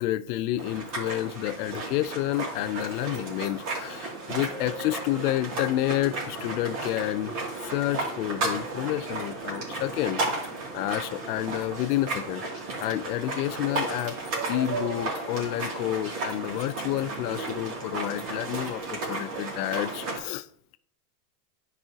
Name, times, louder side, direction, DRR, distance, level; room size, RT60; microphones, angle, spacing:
voice 1, 0.0-10.5 10.7-14.2 14.5-20.5, left 14 dB, 70° left, 0.5 m, -30 dB
sound 1, 0.6-20.2, right 2 dB, 45° right, 2.6 m, -34 dB
10.5 x 4.8 x 2.8 m
supercardioid pair, 155°, 47 cm